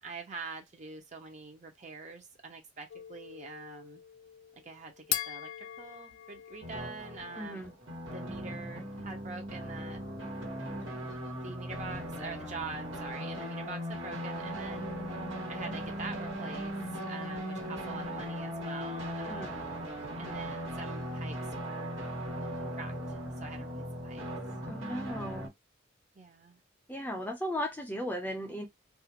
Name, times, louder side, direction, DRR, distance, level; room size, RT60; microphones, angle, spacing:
voice 1, 0.0-4.0 4.6-7.7 8.1-10.0 11.4-14.9 15.4-19.7 20.2-22.0 22.7-24.2 26.1-26.6, right 4 dB, 35° right, 0.7 m, -45 dB
sound 1, 2.9-7.7, left 11 dB, 85° left, 0.4 m, -41 dB
sound 2, 6.6-25.5, equal, 75° right, 1.3 m, -38 dB
voice 2, 7.4-7.7 19.3-19.5 24.7-25.5 26.9-28.7, equal, 10° left, 0.5 m, -36 dB
2.4 x 2.4 x 2.8 m
head